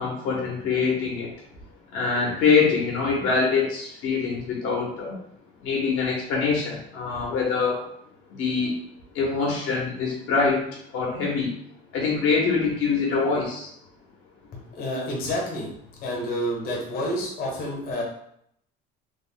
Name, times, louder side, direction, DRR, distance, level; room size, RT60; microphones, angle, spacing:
voice 1, 0.0-1.3 1.9-5.2 5.6-7.8 8.4-8.7 9.1-10.6 10.9-11.5 11.9-13.7, left 5 dB, 75° left, -2 dB, 0.9 m, -24 dB
voice 2, 14.7-15.7 16.0-18.0, equal, 50° left, -2 dB, 1.0 m, -29 dB
3.3 x 2.1 x 3.7 m, 0.71 s
cardioid pair, 180°, 20 cm